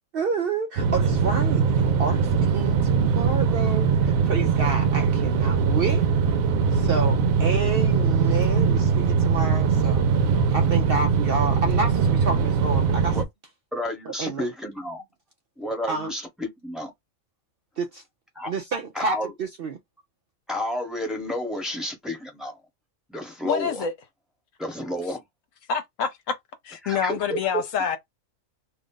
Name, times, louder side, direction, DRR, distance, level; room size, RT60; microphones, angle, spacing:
voice 1, 0.1-6.0 6.7-10.1 10.5-13.2 14.1-14.5 15.9-16.1 17.8-18.0 18.5-19.8, right 4 dB, 60° right, 0.6 m, -29 dB
sound 1, 0.8-13.2, right 5 dB, 85° right, 1.1 m, -21 dB
voice 2, 13.7-15.0 15.6-16.9 18.3-18.5 18.9-19.3 20.5-22.6 23.1-23.8 24.6-25.2 26.8-27.4, left 1 dB, ahead, 1.0 m, -31 dB
voice 3, 23.4-23.9 25.7-26.3 26.6-28.0, left 7 dB, 70° left, 1.1 m, -26 dB
2.7 x 2.4 x 3.7 m
omnidirectional pair, 1.4 m